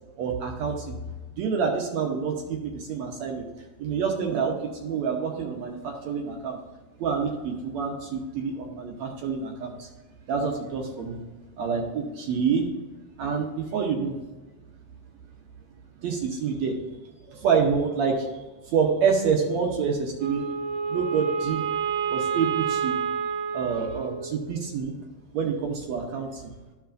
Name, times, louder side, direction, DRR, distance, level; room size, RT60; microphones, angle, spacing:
voice 1, 0.2-1.0 1.4-3.5 3.8-4.6 4.8-6.6 7.0-9.9 10.3-11.2 11.6-12.7 13.2-14.2 16.0-16.8 17.3-20.5 20.9-21.6 22.1-23.0 23.5-24.9 25.3-26.5, right 6 dB, 70° right, 1 dB, 2.1 m, -27 dB
Wind instrument woodwind instrument, 20.2-24.6, right 6 dB, 90° right, 1.2 m, -29 dB
13.0 x 5.7 x 2.6 m, 1.2 s
omnidirectional pair, 3.4 m